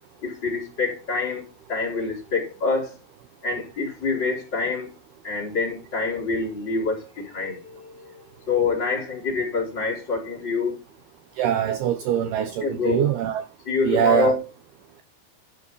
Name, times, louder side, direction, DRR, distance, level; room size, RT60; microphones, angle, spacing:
voice 1, 0.2-3.0 3.4-4.9 5.2-8.2 8.5-10.8 12.6-13.1 13.6-14.4, left 4 dB, 25° left, 4.5 m, -26 dB
voice 2, 11.4-13.5 13.8-14.4, right 10 dB, 75° right, 2.4 m, -23 dB
12.5 x 6.7 x 5.4 m
omnidirectional pair, 5.3 m